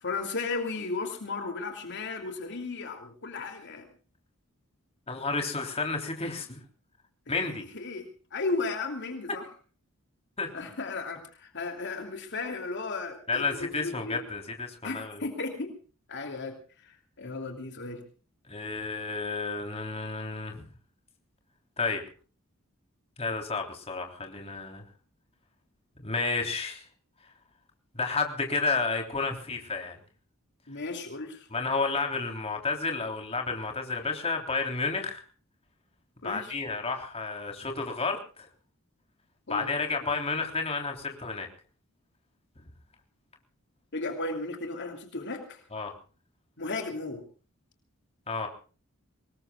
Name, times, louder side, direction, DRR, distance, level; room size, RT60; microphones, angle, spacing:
voice 1, 0.0-3.9 7.3-9.5 10.5-14.2 14.8-15.7 16.1-18.0 30.7-31.5 36.2-36.5 39.5-39.7 43.9-45.6 46.6-47.2, left 3 dB, 55° left, 5 dB, 2.8 m, -35 dB
voice 2, 5.1-6.6 7.3-7.6 10.4-10.5 13.3-15.2 18.5-20.7 21.8-22.0 23.2-24.9 26.0-26.9 27.9-30.0 31.5-35.2 36.2-38.5 39.5-41.5 45.7-45.9 48.3-48.5, left 4 dB, 30° left, 3 dB, 3.5 m, -31 dB
25.0 x 20.0 x 2.4 m, 0.39 s
head